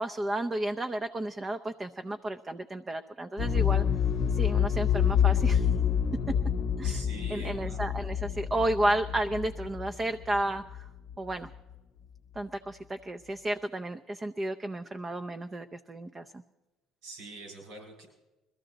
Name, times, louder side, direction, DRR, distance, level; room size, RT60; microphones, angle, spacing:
voice 1, 0.0-3.9 4.3-5.7 6.8-7.0 7.3-10.9 11.2-11.5 12.4-16.4, right 1 dB, 25° right, 7 dB, 0.5 m, -32 dB
sound 1, 3.4-11.1 11.4-11.5, left 8 dB, 60° left, 0.8 m, -28 dB
voice 2, 6.8-7.8 17.0-18.1, right 2 dB, 80° right, 0 dB, 6.4 m, -44 dB
21.0 x 14.0 x 4.0 m, 1.1 s
supercardioid pair, 95°, 0 cm